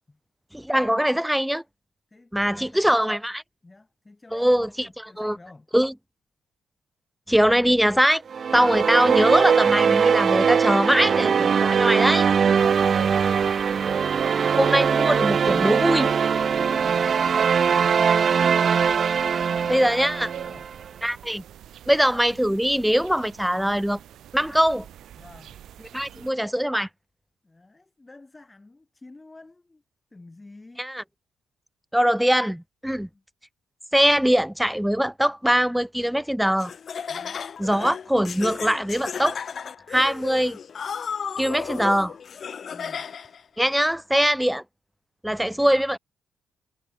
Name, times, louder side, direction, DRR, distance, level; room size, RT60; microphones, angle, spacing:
voice 1, 0.5-1.6 2.3-3.4 4.3-5.4 5.7-5.9 7.3-8.2 8.5-12.3 14.6-16.2 19.7-20.3 21.0-21.4 21.9-24.0 24.3-24.9 25.9-26.9 30.8-31.0 31.9-33.1 33.9-36.7 37.6-39.4 39.9-40.6 41.4-42.1 43.6-44.6 45.2-46.0, equal, 5° right, 1.0 m, -22 dB
voice 2, 2.1-3.1 3.6-5.7 16.6-17.3 19.2-19.9 20.2-20.7 25.2-25.6 27.4-29.8 30.1-30.9 33.1-33.2 37.1-37.4 42.7-43.1 45.3-45.8, left 2 dB, 20° left, 5.4 m, -49 dB
sound 1, 8.3-20.7, right 6 dB, 50° right, 0.9 m, -21 dB
sound 2, 12.6-26.3, right 11 dB, 70° right, 1.3 m, -42 dB
Laughter, 36.6-43.4, left 7 dB, 50° left, 1.5 m, -34 dB
cardioid pair, 90°, 0 cm